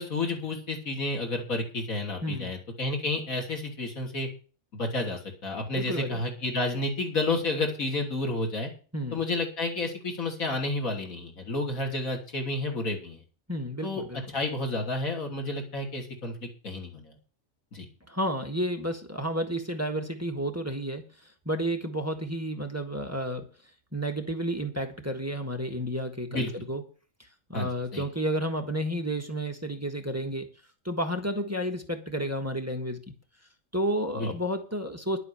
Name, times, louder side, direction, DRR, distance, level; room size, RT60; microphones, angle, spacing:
voice 1, 0.0-4.3 4.7-8.7 9.1-13.2 13.8-14.0 14.3-17.2 17.7-17.9 26.3-26.6 27.5-28.0 34.1-34.3, left 2 dB, 90° left, 2 dB, 3.4 m, -31 dB
voice 2, 2.2-2.5 5.7-6.2 8.9-9.2 13.5-14.2 18.1-21.1 21.4-23.5 23.9-26.8 27.5-30.5 30.8-33.0 33.7-35.2, equal, 10° right, 5 dB, 1.6 m, -31 dB
11.5 x 8.1 x 7.0 m, 0.37 s
omnidirectional pair, 1.4 m